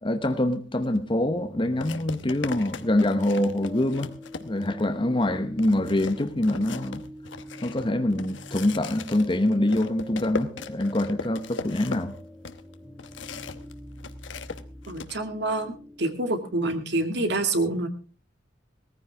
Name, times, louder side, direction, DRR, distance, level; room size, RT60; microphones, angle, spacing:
voice 1, 0.0-4.1 4.4-7.0 7.6-12.1, left 1 dB, 30° left, 1.0 m, -25 dB
sound 1, 0.8-1.0 1.8-4.8 5.2-5.3 5.6-13.7 14.0-15.1, left 4 dB, 85° left, 1.0 m, -38 dB
sound 2, 0.8-16.8, equal, ahead, 1.5 m, -45 dB
voice 2, 14.9-15.7 16.0-17.9, right 2 dB, 65° right, 2.1 m, -27 dB
18.5 x 14.5 x 3.4 m
head